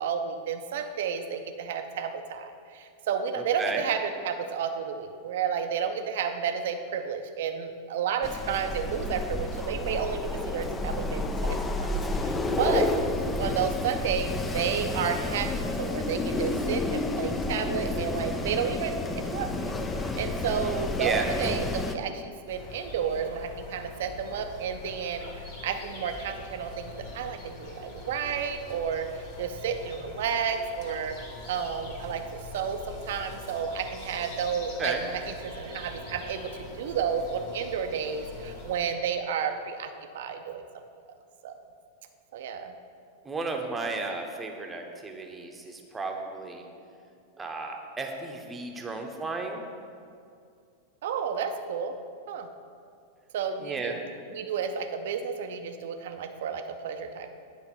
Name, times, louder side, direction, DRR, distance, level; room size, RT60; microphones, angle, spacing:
voice 1, 0.0-12.9 13.4-31.2 31.5-32.2 32.5-40.6 41.4-41.5 42.3-42.7 51.0-51.9 52.3-52.5 53.3-54.0 54.3-57.3, right 7 dB, 55° right, 7 dB, 0.6 m, -31 dB
voice 2, 3.3-3.8 21.0-21.2 34.8-35.0 43.2-46.6 47.4-49.6 53.6-53.9, right 3 dB, 15° right, 2 dB, 0.9 m, -33 dB
Wind, 8.2-22.0, left 2 dB, 15° left, 0.5 m, -30 dB
sound 1, 22.5-38.9, left 2 dB, 50° left, 1.7 m, -43 dB
9.7 x 4.0 x 5.7 m, 2.4 s
figure-of-eight pair, 90°, 0 cm